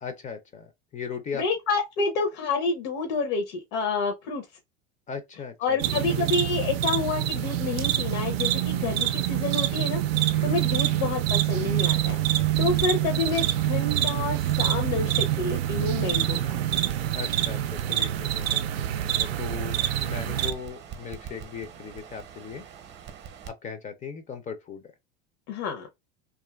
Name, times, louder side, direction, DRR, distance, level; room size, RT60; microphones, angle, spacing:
voice 1, 0.0-1.5 5.1-6.3 10.3-11.0 17.1-22.6 23.4-24.9, left 6 dB, 25° left, 0.4 m, -38 dB
voice 2, 1.3-4.4 5.6-10.0 10.4-12.2 12.6-16.6 25.5-25.9, left 4 dB, 60° left, 0.7 m, -28 dB
sound 1, 5.8-20.5, right 13 dB, 85° right, 0.5 m, -26 dB
Crackle, 11.7-23.5, right 8 dB, 35° right, 0.7 m, -44 dB
2.5 x 2.4 x 2.2 m
hypercardioid pair, 100°, 30 cm